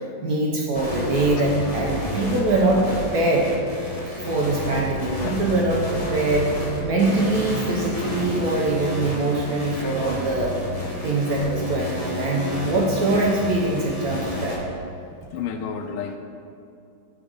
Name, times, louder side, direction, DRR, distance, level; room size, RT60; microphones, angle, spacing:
voice 1, 0.2-3.5 4.2-6.6 6.8-10.5 11.0-14.6, right 2 dB, 65° right, -2 dB, 0.9 m, -23 dB
sound 1, 0.7-14.6, left 1 dB, 40° left, 0.5 m, -30 dB
voice 2, 15.3-16.2, left 7 dB, 85° left, 5 dB, 1.4 m, -32 dB
5.1 x 4.9 x 6.2 m, 2.5 s
omnidirectional pair, 2.3 m